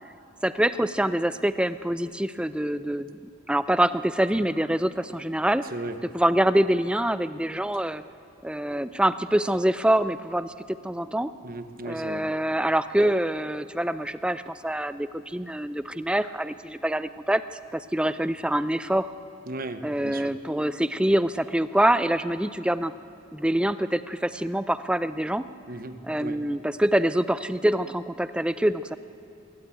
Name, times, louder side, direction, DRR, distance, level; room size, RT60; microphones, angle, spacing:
voice 1, 0.4-3.2 3.5-5.7 6.1-8.0 8.4-10.5 10.8-11.3 11.8-17.4 17.7-19.1 19.8-22.9 23.3-25.4 26.0-29.0, right 1 dB, 5° right, 13 dB, 0.4 m, -25 dB
voice 2, 11.4-12.3 19.5-20.3 25.7-26.5, right 2 dB, 45° right, 9 dB, 1.1 m, -36 dB
22.5 x 17.0 x 9.2 m, 2.6 s
head